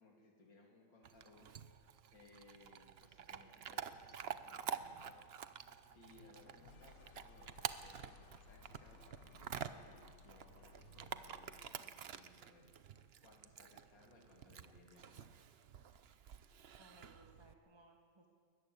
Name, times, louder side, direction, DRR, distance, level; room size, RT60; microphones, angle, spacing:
voice 1, 0.0-1.5 2.1-15.3 15.9-16.1, left 2 dB, 80° left, 0 dB, 3.8 m, -64 dB
Chewing mastication / Dog, 1.0-17.5, right 8 dB, 65° right, 0.6 m, -49 dB
sound 1, 4.1-11.9, left 6 dB, 55° left, 1.2 m, -63 dB
voice 2, 16.8-18.3, right 2 dB, 15° right, 1 dB, 1.5 m, -64 dB
21.5 x 14.0 x 9.6 m, 2.1 s
omnidirectional pair, 2.0 m